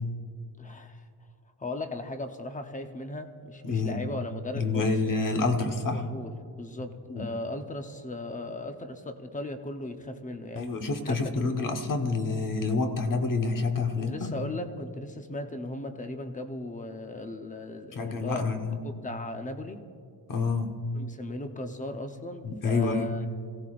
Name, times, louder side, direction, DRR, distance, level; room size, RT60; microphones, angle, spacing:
voice 1, 0.6-1.0 1.6-5.0 5.9-6.3 6.6-10.7 11.0-11.5 14.1-18.4 18.8-19.8 20.9-23.3, left 2 dB, 15° left, 6 dB, 0.8 m, -37 dB
voice 2, 3.6-4.0 4.5-6.0 7.1-7.3 10.5-14.3 17.9-18.8 20.3-20.7 22.4-23.0, left 3 dB, 40° left, 4 dB, 1.3 m, -28 dB
26.5 x 17.0 x 2.5 m, 2.3 s
wide cardioid pair, 160°, 48 cm